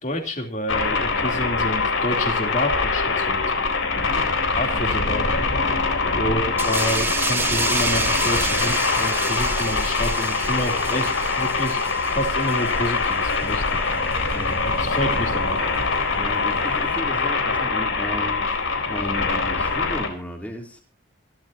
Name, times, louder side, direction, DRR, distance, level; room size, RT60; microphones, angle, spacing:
voice 1, 0.0-3.5 4.5-5.4 6.1-11.8 12.1-13.8 14.8-15.7, equal, 40° left, 3 dB, 3.3 m, -29 dB
sound 1, 0.7-20.1, left 4 dB, 75° left, 4.0 m, -23 dB
voice 2, 3.9-4.3 6.0-6.4 14.3-14.8 16.2-20.8, equal, 5° left, 1 dB, 3.4 m, -35 dB
sound 2, 6.6-13.8 14.1-14.3, right 3 dB, 10° right, 1.2 m, -29 dB
27.5 x 12.0 x 2.9 m, 0.32 s
head